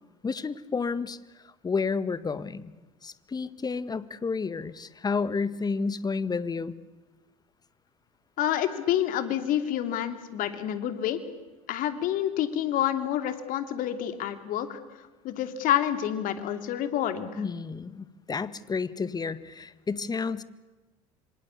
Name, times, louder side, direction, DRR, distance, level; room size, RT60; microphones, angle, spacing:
voice 1, 0.2-1.2 1.4-2.7 3.0-6.7 17.4-20.4, left 4 dB, 20° left, 16 dB, 1.6 m, -31 dB
voice 2, 8.4-11.2 11.7-17.4, left 11 dB, 50° left, 9 dB, 3.0 m, -28 dB
26.5 x 25.5 x 8.5 m, 1.2 s
figure-of-eight pair, 65°, 18 cm